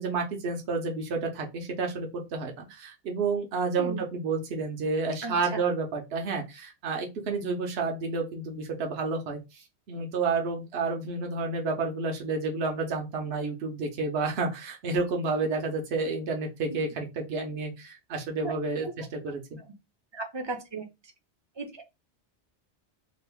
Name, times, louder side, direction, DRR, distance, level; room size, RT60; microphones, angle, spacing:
voice 1, 0.0-19.4, right 4 dB, 70° right, 2 dB, 1.0 m, -30 dB
voice 2, 5.2-5.6 18.4-18.5 18.8-18.9 19.5-19.7 20.1-20.9 21.6-21.8, right 3 dB, 30° right, 4 dB, 0.6 m, -35 dB
2.9 x 2.5 x 3.4 m, 0.24 s
omnidirectional pair, 1.2 m